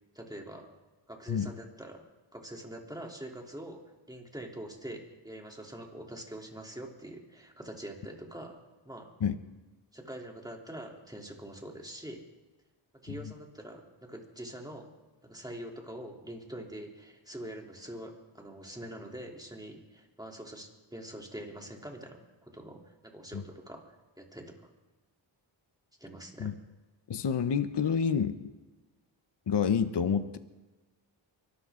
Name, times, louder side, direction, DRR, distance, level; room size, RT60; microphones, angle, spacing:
voice 1, 0.1-0.7 1.1-2.0 2.3-3.8 4.1-8.6 8.8-9.1 9.9-12.2 12.9-14.9 15.2-24.6 26.0-26.5, right 1 dB, 10° right, 0 dB, 3.2 m, -44 dB
voice 2, 27.1-28.4 29.5-30.4, left 7 dB, 55° left, 11 dB, 0.9 m, -28 dB
24.0 x 13.0 x 3.7 m, 1.1 s
cardioid pair, 55°, 48 cm